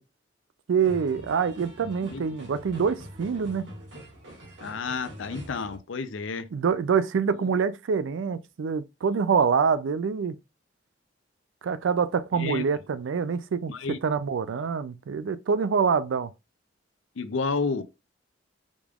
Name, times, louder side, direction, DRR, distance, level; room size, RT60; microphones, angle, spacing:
voice 1, 0.7-3.7 6.5-10.4 11.6-13.7 14.0-16.3, right 6 dB, 90° right, 0.4 m, -25 dB
sound 1, 0.8-5.8, equal, 75° right, 1.9 m, -44 dB
voice 2, 4.6-6.5 7.4-7.5 12.3-12.6 13.7-14.0 17.2-17.8, left 4 dB, 90° left, 0.6 m, -30 dB
5.1 x 3.4 x 2.4 m
head